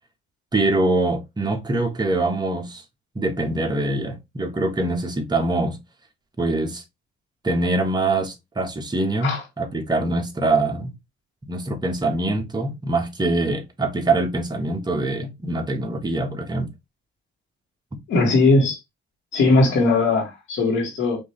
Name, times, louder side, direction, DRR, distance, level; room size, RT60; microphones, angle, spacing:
voice 1, 0.5-2.8 3.1-5.8 6.4-6.8 7.4-10.9 11.5-16.7, right 2 dB, 20° right, 1.5 m, -24 dB
voice 2, 18.1-18.8 19.3-21.2, left 3 dB, 80° left, 2.1 m, -19 dB
5.1 x 3.2 x 3.2 m
cardioid pair, 90°, 20 cm